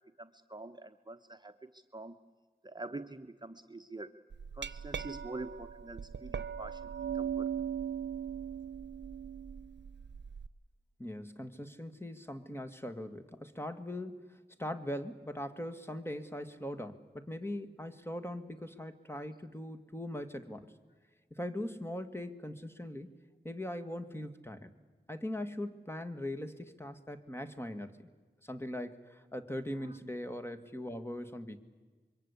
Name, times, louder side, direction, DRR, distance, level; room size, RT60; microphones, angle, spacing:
voice 1, 0.2-2.2 2.6-4.1 4.5-6.8 7.1-7.5, right 2 dB, 25° right, 7 dB, 1.0 m, -45 dB
Glass, 4.3-10.5, right 8 dB, 85° right, 0.7 m, -39 dB
voice 2, 11.0-20.7 21.3-23.2 23.4-24.7 25.1-28.1 28.4-31.6, left 1 dB, 15° left, 7 dB, 1.9 m, -41 dB
25.5 x 23.0 x 8.4 m, 1.4 s
cardioid pair, 50°, 18 cm